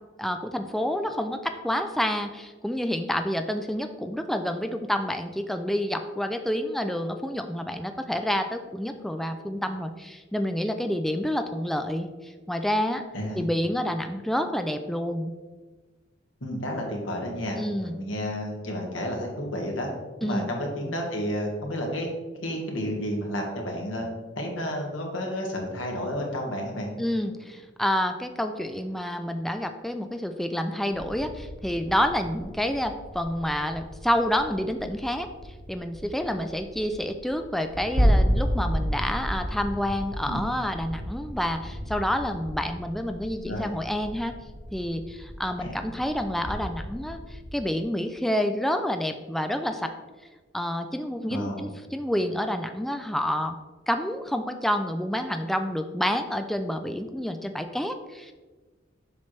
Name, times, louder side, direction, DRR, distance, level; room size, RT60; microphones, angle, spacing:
voice 1, 0.2-13.0 13.3-15.3 17.6-18.0 20.2-20.5 27.0-35.3 35.7-44.3 44.7-49.9 50.5-53.6 53.9-58.3, equal, ahead, 6 dB, 0.3 m, -28 dB
voice 2, 13.1-13.4 16.4-19.9 20.2-22.1 22.4-24.1 24.3-26.9 40.2-40.4 43.5-43.7 45.6-45.7 51.3-51.7, equal, 90° left, 0 dB, 1.6 m, -31 dB
sound 1, 30.9-47.5, equal, 55° right, 1.6 m, -32 dB
7.5 x 5.8 x 3.2 m, 1.3 s
head